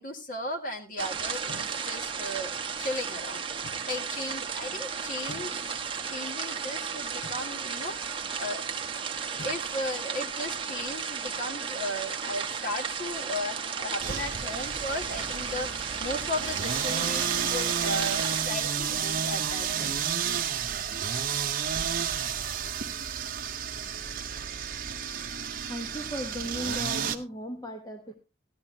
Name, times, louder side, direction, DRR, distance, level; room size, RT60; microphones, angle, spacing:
voice 1, 0.0-5.7 6.1-8.0 8.4-8.6 9.2-20.0, left 1 dB, 45° left, 5 dB, 1.7 m, -36 dB
sound 1, 1.0-18.4, right 6 dB, 25° right, 1.0 m, -34 dB
sound 2, 1.2-1.7 3.6-3.9 5.3-5.5 7.2-7.4 9.4-9.6, left 2 dB, 70° left, 2.1 m, -44 dB
sound 3, 14.0-27.2, right 8 dB, 50° right, 0.8 m, -31 dB
voice 2, 25.7-28.1, equal, 20° left, 4 dB, 1.0 m, -36 dB
15.0 x 11.0 x 2.8 m, 0.26 s
head